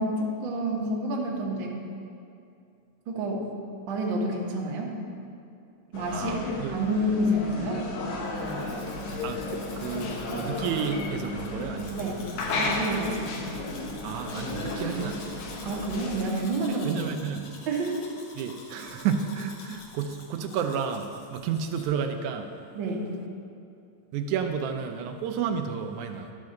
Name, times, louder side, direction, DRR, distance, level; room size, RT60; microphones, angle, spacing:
voice 1, 0.0-1.7 3.1-3.4 3.9-5.0 5.9-6.3 6.7-7.8 12.0-12.2 12.5-13.5 15.6-17.0 17.7-18.0 22.7-23.1, right 1 dB, 55° right, -2 dB, 1.6 m, -29 dB
sound 1, 5.9-16.2, left 2 dB, 80° left, 2.4 m, -33 dB
voice 2, 6.1-6.8 9.2-12.2 14.0-15.3 16.8-17.5 18.4-22.5 24.1-26.3, right 7 dB, 85° right, 6 dB, 2.0 m, -31 dB
Domestic sounds home sounds, 8.2-21.8, left 3 dB, 60° left, 1.7 m, -49 dB
11.5 x 4.7 x 6.4 m, 2.5 s
omnidirectional pair, 3.3 m